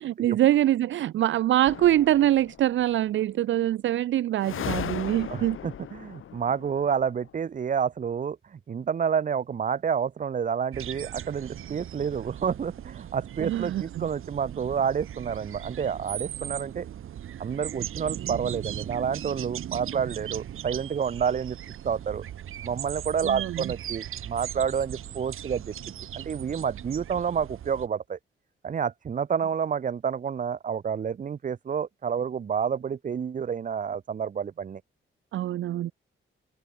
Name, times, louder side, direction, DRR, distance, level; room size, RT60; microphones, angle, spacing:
voice 1, 0.0-5.6 13.4-14.1 23.2-23.6 35.3-35.9, right 13 dB, 70° right, 0.4 m, -24 dB
sound 1, 1.7-2.8 4.4-7.3, left 9 dB, 80° left, 4.6 m, -37 dB
voice 2, 5.3-16.9 17.4-21.6 21.8-22.2 22.6-25.7 26.1-28.2 28.6-34.8, right 7 dB, 40° right, 0.9 m, -29 dB
sound 2, 10.7-27.9, right 10 dB, 85° right, 1.9 m, -38 dB
wide cardioid pair, 160°, 21 cm